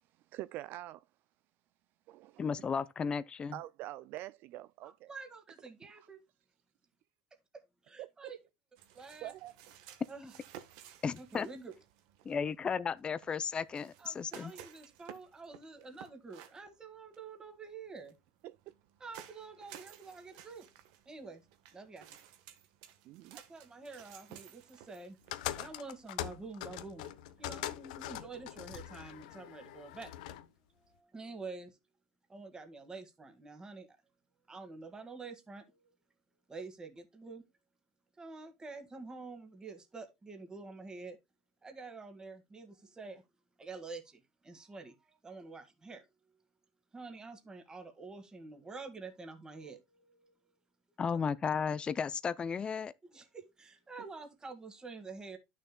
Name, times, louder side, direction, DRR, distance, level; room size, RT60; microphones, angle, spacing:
voice 1, 0.1-1.1 2.1-2.4 3.5-5.1 8.0-8.4 9.2-9.5 18.4-18.7 23.0-23.4, right 15 dB, 55° right, 0.3 m, -45 dB
voice 2, 2.4-3.5 11.0-11.5 12.2-14.5 51.0-52.9, left 6 dB, 25° left, 0.5 m, -34 dB
voice 3, 4.8-6.2 7.5-8.4 8.9-9.3 10.1-10.3 11.2-11.7 14.0-18.2 19.0-20.7 21.1-21.4 21.7-22.1 23.3-25.2 25.5-27.1 27.4-30.1 30.8-31.8 32.3-34.0 34.5-35.9 36.5-37.4 38.2-41.2 41.6-43.2 43.6-46.4 46.9-50.4 53.0-55.4, right 4 dB, 20° right, 1.8 m, -48 dB
sound 1, 8.8-27.5, right 10 dB, 75° right, 1.3 m, -56 dB
sound 2, 25.3-30.4, left 13 dB, 80° left, 0.8 m, -42 dB
11.0 x 6.6 x 2.3 m
supercardioid pair, 110°, 4 cm